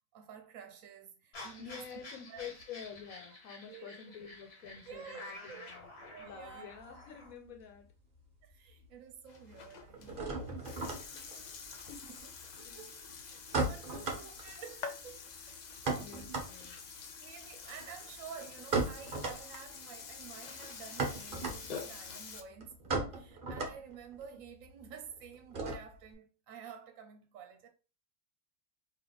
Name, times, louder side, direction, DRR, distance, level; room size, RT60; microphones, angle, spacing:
voice 1, 0.1-1.9 2.3-2.5 3.7-3.9 4.9-5.7 6.1-6.7 8.4-10.5 12.0-15.5 16.8-27.7, right 7 dB, 75° right, 1.0 m, -51 dB
sound 1, 1.3-7.3, left 2 dB, 50° left, 1.4 m, -50 dB
voice 2, 1.6-5.9 6.2-7.9 11.1-12.0 12.5-12.9 13.3-13.5 15.6-15.7 15.9-17.1 24.3-24.4, left 7 dB, 85° left, 1.3 m, -49 dB
sound 2, 6.3-8.9 9.1-26.1, right 3 dB, 45° right, 0.9 m, -38 dB
Burping eructation, 9.3-22.4, left 5 dB, 70° left, 0.4 m, -47 dB
3.5 x 2.8 x 3.8 m
omnidirectional pair, 1.4 m